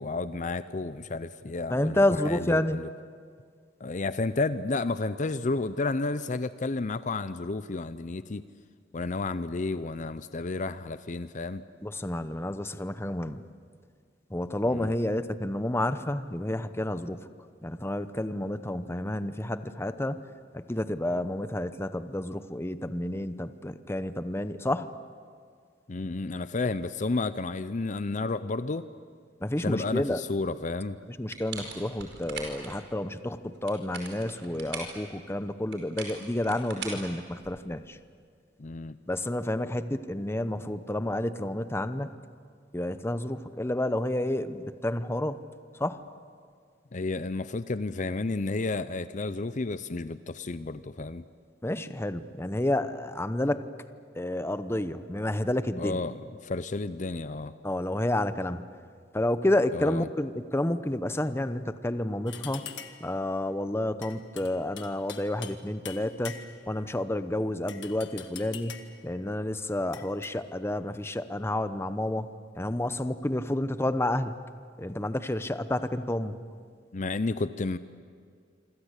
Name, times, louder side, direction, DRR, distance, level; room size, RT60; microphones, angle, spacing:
voice 1, 0.0-2.9 3.8-8.4 8.9-11.6 14.7-14.9 25.9-28.9 29.6-31.0 38.6-39.0 46.9-51.2 55.8-57.5 59.7-60.1 76.9-77.8, left 3 dB, 45° left, 13 dB, 0.6 m, -31 dB
voice 2, 1.7-2.8 11.8-13.4 14.3-17.2 17.6-20.2 20.5-24.9 29.4-30.2 31.1-38.0 39.1-42.1 42.7-45.4 45.8-46.1 51.6-53.6 54.2-56.0 57.6-58.6 59.1-62.6 63.0-72.3 72.5-74.4 74.8-76.3, left 1 dB, 15° left, 12 dB, 0.8 m, -30 dB
sound 1, 31.3-32.7 33.5-35.0 35.7-37.7, right 4 dB, 85° right, 5.1 m, -40 dB
sound 2, 62.3-63.1 64.0-65.6 65.9-66.7 67.7-69.0 69.9-70.3, left 9 dB, 75° left, 1.8 m, -43 dB
27.0 x 25.5 x 8.2 m, 2.1 s
head